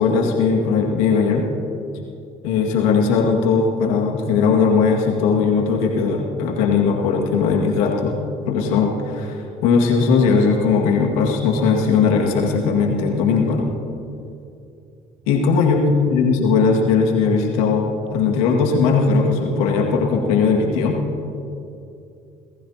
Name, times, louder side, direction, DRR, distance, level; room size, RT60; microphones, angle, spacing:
voice 1, 0.0-1.5 2.4-8.2 8.5-13.7 15.3-21.0, left 5 dB, 85° left, 0 dB, 2.1 m, -18 dB
29.0 x 15.0 x 2.9 m, 2.7 s
hypercardioid pair, 60°, 17 cm